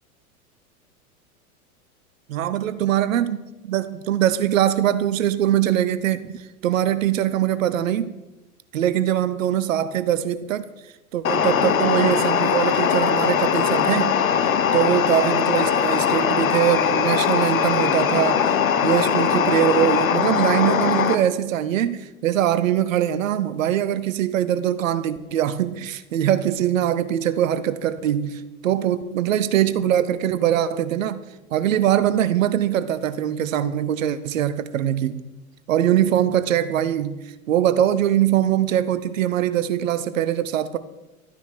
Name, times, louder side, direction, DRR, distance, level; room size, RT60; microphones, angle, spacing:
voice 1, 2.3-3.4 3.6-8.1 8.7-10.7 11.1-14.1 14.7-18.5 18.8-31.2 31.5-35.3 35.7-37.2 37.5-40.8, right 11 dB, 65° right, 1.0 m, -22 dB
sound 1, 11.2-21.1, left 7 dB, 70° left, 1.2 m, -21 dB
12.5 x 9.8 x 5.9 m
figure-of-eight pair, 85°, 43 cm